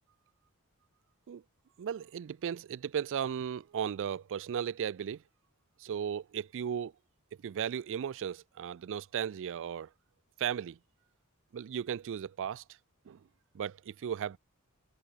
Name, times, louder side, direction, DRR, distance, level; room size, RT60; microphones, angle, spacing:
voice 1, 1.8-5.2 5.8-6.9 7.4-9.9 10.4-10.8 11.5-12.6 13.1-13.2 13.5-14.4, right 8 dB, 60° right, 0.4 m, -36 dB
head